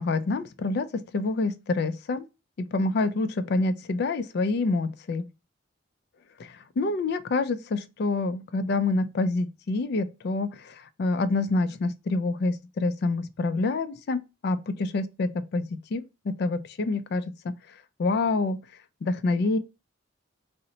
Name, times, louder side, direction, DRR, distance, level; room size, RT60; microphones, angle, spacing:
voice 1, 0.0-2.3 2.6-5.2 6.4-14.2 14.4-17.5 18.0-18.6 19.0-19.6, left 3 dB, 55° left, 0.3 m, -27 dB
2.8 x 2.0 x 3.8 m
head